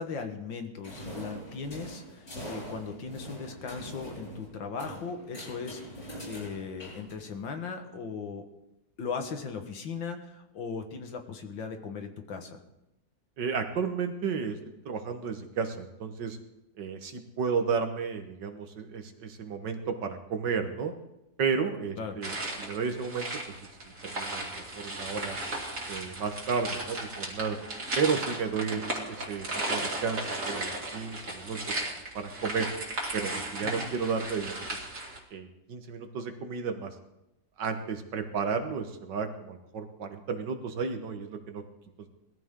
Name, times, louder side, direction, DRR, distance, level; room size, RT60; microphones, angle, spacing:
voice 1, 0.0-8.5 9.0-12.6 22.0-22.2 28.7-28.8 33.6-33.9, left 5 dB, 75° left, 6 dB, 2.2 m, -38 dB
sound 1, 0.8-7.6, equal, 50° left, 7.1 m, -43 dB
voice 2, 13.4-14.6 14.9-16.4 16.8-20.9 21.4-23.3 24.0-25.4 25.9-27.6 28.0-31.8 32.1-32.7 33.1-34.9 35.3-36.9 37.6-41.6, right 5 dB, 65° right, 7 dB, 1.9 m, -32 dB
sound 2, 22.2-35.2, right 2 dB, 45° right, 2.8 m, -36 dB
20.0 x 14.0 x 3.7 m, 0.91 s
omnidirectional pair, 2.1 m